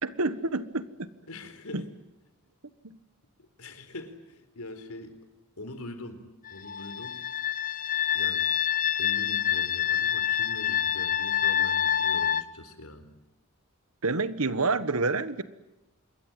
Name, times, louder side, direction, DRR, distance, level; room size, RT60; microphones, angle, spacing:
voice 1, 0.0-1.1 1.7-1.8 2.8-3.0 14.0-15.4, right 3 dB, 75° right, 14 dB, 1.5 m, -28 dB
voice 2, 1.3-1.8 3.6-5.2 5.6-7.2 8.1-8.5 9.0-13.1, left 2 dB, 80° left, 9 dB, 4.3 m, -43 dB
sound 1, 6.5-12.4, left 9 dB, 40° left, 1.0 m, -27 dB
26.5 x 22.0 x 9.2 m, 1.0 s
head